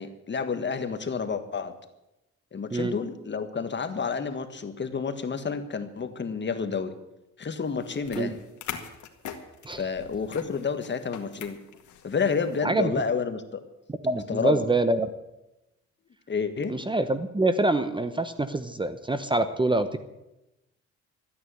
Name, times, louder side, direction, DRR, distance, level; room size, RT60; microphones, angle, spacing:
voice 1, 0.0-1.7 2.5-6.9 7.4-8.4 9.8-11.6 12.0-13.6 14.3-14.6 16.3-16.8, left 5 dB, 35° left, 9 dB, 1.6 m, -30 dB
sound 1, 7.7-12.6, left 8 dB, 75° left, 1.9 m, -42 dB
voice 2, 14.0-15.1 16.7-20.0, right 2 dB, 15° right, 11 dB, 0.9 m, -25 dB
13.5 x 9.4 x 9.2 m, 0.93 s
cardioid pair, 90°, 30 cm